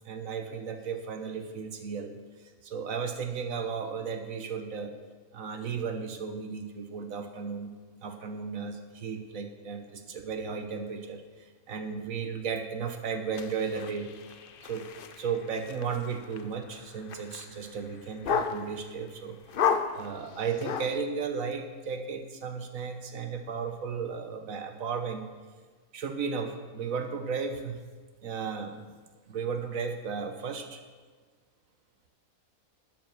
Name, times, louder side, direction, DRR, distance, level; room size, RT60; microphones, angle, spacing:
voice 1, 0.0-4.9 5.3-7.7 8.0-14.9 15.2-19.4 19.9-25.3 25.9-27.8 28.2-28.9 29.3-30.8, right 6 dB, 70° right, 6 dB, 1.4 m, -35 dB
sound 1, 13.3-18.9 19.5-21.0, left 7 dB, 55° left, 0.7 m, -33 dB
11.5 x 7.6 x 6.0 m, 1.5 s
omnidirectional pair, 1.5 m